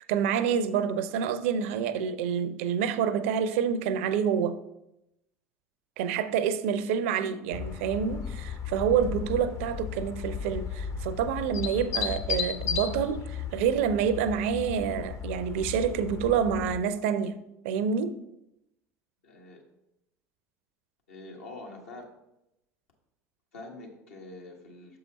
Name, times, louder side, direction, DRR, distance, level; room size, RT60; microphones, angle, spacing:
voice 1, 0.0-4.6 6.0-17.4 17.6-18.2, right 7 dB, 65° right, 0.5 m, -27 dB
sound 1, 7.5-16.8, left 7 dB, 40° left, 0.7 m, -35 dB
voice 2, 19.2-19.6 21.1-22.0 23.5-25.0, left 2 dB, 75° left, 1.4 m, -45 dB
6.8 x 4.7 x 4.1 m
figure-of-eight pair, 65°, 8 cm